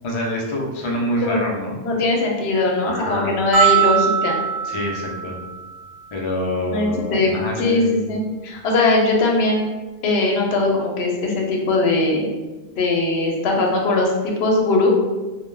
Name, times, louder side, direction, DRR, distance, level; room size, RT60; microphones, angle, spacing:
voice 1, 0.0-1.8 2.8-3.3 4.6-5.4 6.1-7.9, left 1 dB, 50° left, -1 dB, 0.4 m, -26 dB
voice 2, 1.8-4.4 6.7-7.3 7.6-9.7 10.0-12.3 12.8-14.9, left 2 dB, 80° left, 0 dB, 0.8 m, -20 dB
sound 1, 3.5-5.9, right 8 dB, 65° right, 0.8 m, -21 dB
2.2 x 2.1 x 3.2 m, 1.2 s
omnidirectional pair, 1.1 m